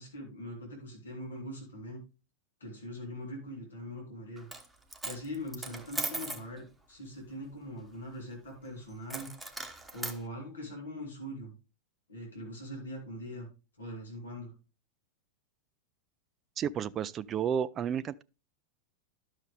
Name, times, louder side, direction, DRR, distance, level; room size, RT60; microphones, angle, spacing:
voice 1, 0.0-2.0 2.6-4.5 5.0-9.3 9.9-11.5 12.1-13.5 13.8-14.5, equal, 70° left, 3.1 m, -42 dB
Coin (dropping), 4.4-4.7 4.9-6.5 9.1-10.2, right 2 dB, 5° right, 1.1 m, -38 dB
voice 2, 16.6-18.2, right 8 dB, 30° right, 0.3 m, -32 dB
11.5 x 6.4 x 3.3 m
figure-of-eight pair, 90°, 0 cm